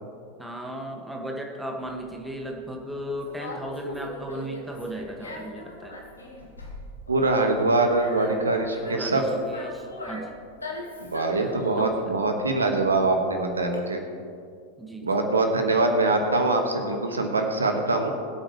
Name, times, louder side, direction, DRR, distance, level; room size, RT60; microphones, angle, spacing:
voice 1, 0.4-5.9 8.9-10.3 11.7-12.1 14.8-15.3, right 1 dB, 5° right, 1 dB, 1.8 m, -36 dB
Conversation, 1.8-13.7, left 1 dB, 75° left, 1.7 m, -39 dB
voice 2, 7.1-9.2 11.0-14.0 15.0-18.1, right 2 dB, 75° right, 4 dB, 1.5 m, -23 dB
22.0 x 8.9 x 3.2 m, 2.3 s
figure-of-eight pair, 90°, 0 cm